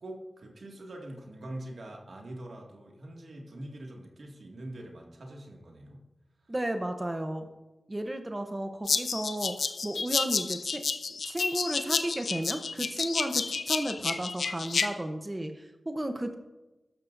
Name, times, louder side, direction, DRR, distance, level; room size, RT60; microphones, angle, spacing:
voice 1, 0.0-6.0, right 1 dB, 80° right, -1 dB, 2.1 m, -43 dB
voice 2, 6.5-7.5 7.9-10.9 11.2-16.3, right 1 dB, 25° right, 6 dB, 0.9 m, -33 dB
sound 1, 8.9-14.9, left 4 dB, 90° left, 0.6 m, -30 dB
13.5 x 12.0 x 2.7 m, 1.0 s
cardioid pair, 55°, 0 cm